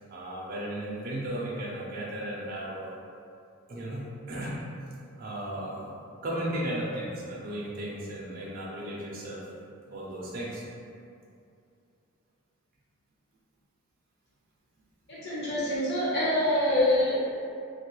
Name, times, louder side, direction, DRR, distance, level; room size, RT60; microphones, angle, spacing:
voice 1, 0.0-2.9 3.7-4.6 5.2-5.9 6.2-9.4 9.9-10.6, right 1 dB, 40° right, -6 dB, 0.5 m, -35 dB
voice 2, 15.1-17.2, left 1 dB, 50° left, -8 dB, 1.1 m, -25 dB
3.1 x 2.3 x 3.1 m, 2.5 s
head